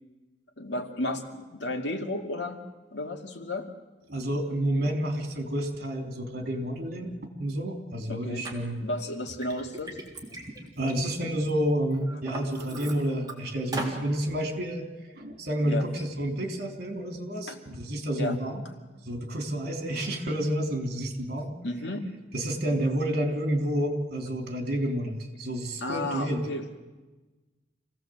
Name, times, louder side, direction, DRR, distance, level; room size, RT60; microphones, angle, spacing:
voice 1, 0.6-2.6 2.9-3.7 8.1-8.5 8.8-10.0 15.6-15.9 17.5-17.6 18.2-18.4 21.6-22.1 25.8-26.8, left 2 dB, 80° left, 3 dB, 2.4 m, -33 dB
voice 2, 4.1-8.8 10.8-14.8 15.1-18.6 19.1-21.5 22.3-26.5, right 1 dB, 60° right, 3 dB, 3.5 m, -29 dB
Liquid, 8.4-8.5 9.1-11.5 11.9-13.3 13.7-14.0, right 2 dB, 25° right, 3.4 m, -38 dB
26.5 x 17.0 x 7.9 m, 1.2 s
head